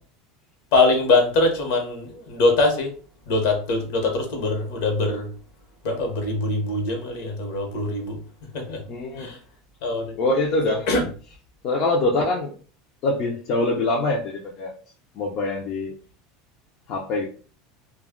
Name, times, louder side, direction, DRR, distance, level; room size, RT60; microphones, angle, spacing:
voice 1, 0.7-2.9 3.3-5.3 5.8-8.2 8.5-8.8 9.2-9.4 9.8-10.1 10.9-11.0, left 2 dB, 70° left, 3 dB, 0.9 m, -22 dB
voice 2, 8.9-9.3 10.1-10.9 11.6-12.6 13.0-14.8 15.1-15.9 16.9-17.3, left 2 dB, 45° left, -1 dB, 0.5 m, -24 dB
2.3 x 2.1 x 3.5 m, 0.40 s
supercardioid pair, 135°, 0 cm